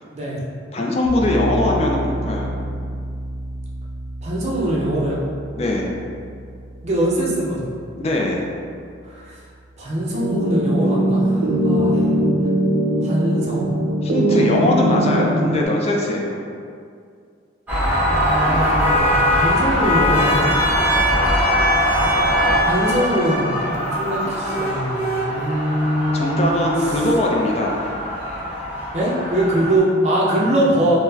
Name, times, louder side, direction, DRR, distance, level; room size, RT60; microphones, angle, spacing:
voice 1, 0.7-2.6 5.5-5.9 8.0-8.5 14.0-16.4 22.8-22.9 24.2-24.3 26.1-27.8, left 1 dB, 30° left, -1 dB, 0.3 m, -21 dB
sound 1, 1.1-9.9, right 1 dB, 65° left, 0.7 m, -32 dB
voice 2, 4.2-5.2 6.8-7.7 9.0-9.4 9.8-12.1 13.0-13.7 18.0-20.6 22.6-26.5 28.9-31.0, right 1 dB, 35° right, -5 dB, 0.5 m, -22 dB
sound 2, 10.1-15.7, right 1 dB, 85° right, 0.4 m, -20 dB
sound 3, 17.7-29.8, equal, 10° right, 0.9 m, -21 dB
4.0 x 2.0 x 2.7 m, 2.3 s
head